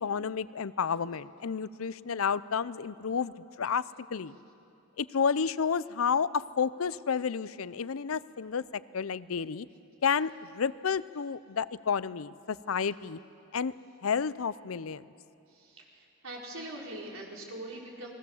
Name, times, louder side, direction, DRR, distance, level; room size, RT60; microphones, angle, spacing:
voice 1, 0.0-3.8 4.1-4.3 5.0-9.7 10.0-13.2 13.5-13.7 14.0-15.0, left 6 dB, 80° left, 17 dB, 0.6 m, -31 dB
voice 2, 15.5-18.1, right 1 dB, 75° right, -2 dB, 4.5 m, -42 dB
30.0 x 20.5 x 7.2 m, 2.6 s
head